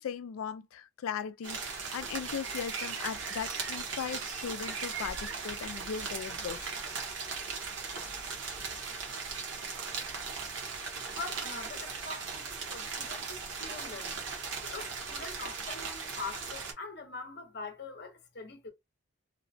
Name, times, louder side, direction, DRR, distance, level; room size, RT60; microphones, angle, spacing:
voice 1, 0.0-6.7, left 7 dB, 85° left, 0.3 m, -38 dB
sound 1, 1.4-16.7, right 5 dB, 65° right, 0.9 m, -38 dB
voice 2, 11.1-14.2 14.6-18.7, left 3 dB, 50° left, 0.7 m, -43 dB
2.9 x 2.1 x 2.5 m
head